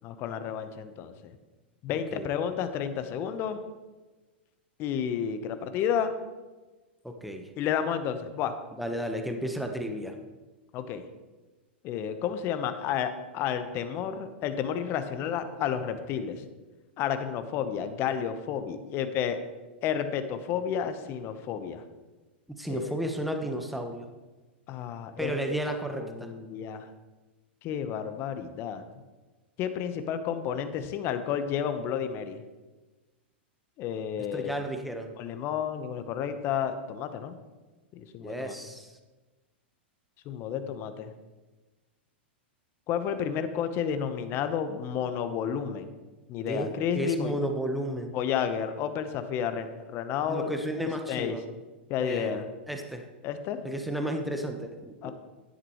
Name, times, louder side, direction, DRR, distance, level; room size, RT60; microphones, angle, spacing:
voice 1, 0.0-1.3 1.8-3.6 4.8-6.1 7.6-8.6 10.7-11.0 11.8-16.4 17.0-19.4 19.8-21.8 22.7-23.0 24.7-25.6 26.0-26.9 27.6-28.8 29.6-32.4 33.8-34.6 35.2-37.4 37.9-38.5 40.2-41.1 42.9-45.9 46.3-47.4 48.1-50.5 51.1-51.4 51.9-52.5 53.2-53.7 55.0-55.1, left 8 dB, 40° left, 9 dB, 1.0 m, -31 dB
voice 2, 7.0-7.5 8.8-10.1 22.6-24.1 25.2-26.3 34.3-35.1 38.2-38.9 46.5-48.1 50.3-51.4 52.0-52.4 52.7-53.0 53.6-55.1, right 1 dB, ahead, 4 dB, 1.1 m, -33 dB
11.0 x 10.0 x 3.1 m, 1.2 s
hypercardioid pair, 110°, 6 cm